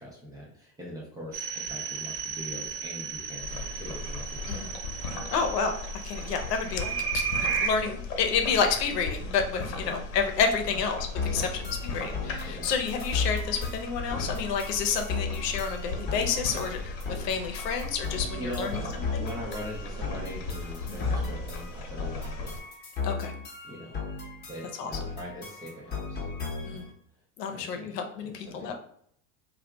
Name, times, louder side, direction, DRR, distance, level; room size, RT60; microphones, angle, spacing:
voice 1, 0.0-4.8 6.2-6.3 9.8-10.0 10.7-10.8 11.2-11.6 12.4-12.7 18.3-18.9 19.1-22.6 23.6-24.0 24.5-26.2 26.6-26.9 27.5-28.7, equal, 10° right, -5 dB, 0.3 m, -42 dB
sound 1, 1.3-7.7, right 6 dB, 40° right, 0.7 m, -34 dB
sound 2, 3.4-22.6, left 2 dB, 50° left, 0.9 m, -37 dB
voice 2, 5.3-5.7 6.0-7.2 7.6-11.5 11.8-18.8 19.1-19.2 23.0-23.3 24.8-24.9 26.7-26.8 27.4-28.7, left 6 dB, 90° left, 5 dB, 0.8 m, -29 dB
sound 3, 11.2-26.9, left 4 dB, 20° left, 0.7 m, -36 dB
2.8 x 2.4 x 3.3 m, 0.65 s
supercardioid pair, 125°, 46 cm